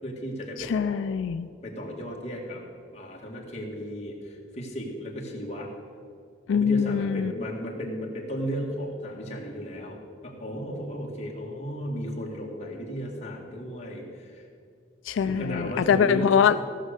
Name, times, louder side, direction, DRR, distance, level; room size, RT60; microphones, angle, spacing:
voice 1, 0.0-1.1 1.6-2.6 2.9-5.7 6.5-14.5 15.2-16.3, equal, 35° left, -2 dB, 2.0 m, -35 dB
voice 2, 0.6-1.5 6.5-7.3 15.0-16.6, left 7 dB, 90° left, 12 dB, 0.3 m, -23 dB
16.0 x 6.5 x 6.5 m, 2.2 s
head